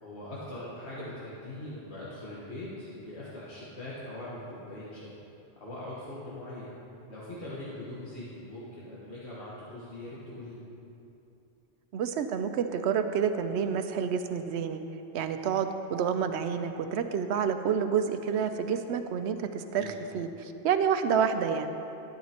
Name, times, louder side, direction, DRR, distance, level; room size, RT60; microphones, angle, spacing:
voice 1, 0.0-5.2 5.6-6.7 7.1-10.6 19.7-20.0, left 1 dB, 85° left, -8 dB, 1.7 m, -41 dB
voice 2, 11.9-14.8 15.1-21.7, right 7 dB, 85° right, 8 dB, 0.9 m, -29 dB
12.5 x 11.0 x 2.9 m, 2.9 s
omnidirectional pair, 1.1 m